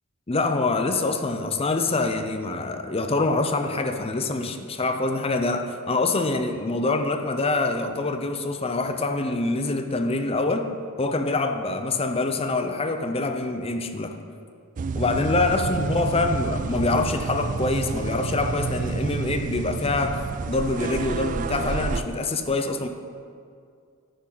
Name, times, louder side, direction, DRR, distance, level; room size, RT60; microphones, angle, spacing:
voice 1, 0.3-10.7 11.0-14.2 14.9-20.2 20.5-22.9, left 3 dB, 25° left, 6 dB, 0.6 m, -25 dB
sound 1, 14.8-22.0, right 4 dB, 40° right, 0.3 m, -29 dB
10.5 x 10.0 x 4.0 m, 2.2 s
head